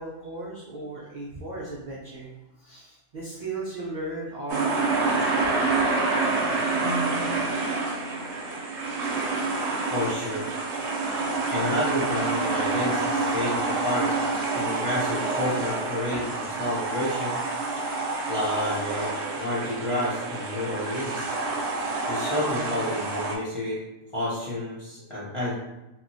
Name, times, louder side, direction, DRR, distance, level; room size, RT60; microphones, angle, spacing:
voice 1, 0.0-2.3 2.6-5.4, right 2 dB, 85° right, -5 dB, 0.4 m, -36 dB
sound 1, 4.5-23.4, right 3 dB, 65° right, 0.7 m, -27 dB
sound 2, 6.8-19.2 19.5-20.5 20.9-21.0, left 1 dB, 65° left, 0.9 m, -45 dB
voice 2, 9.9-10.5 11.5-14.1 14.5-17.4 18.3-21.3 22.1-23.8 24.1-25.5, left 1 dB, 45° left, -8 dB, 0.4 m, -30 dB
2.8 x 2.4 x 2.6 m, 1.0 s
omnidirectional pair, 1.4 m